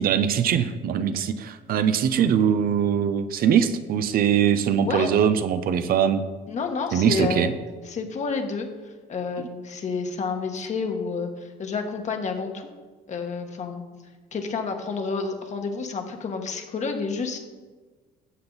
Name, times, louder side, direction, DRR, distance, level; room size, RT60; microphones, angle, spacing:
voice 1, 0.0-6.2 6.9-7.5, right 8 dB, 60° right, 11 dB, 0.7 m, -22 dB
voice 2, 4.8-5.1 6.5-7.5 7.8-12.7 13.1-13.8 14.3-17.4, left 5 dB, 45° left, 4 dB, 1.5 m, -29 dB
13.0 x 7.8 x 4.0 m, 1.3 s
cardioid pair, 110°, 17 cm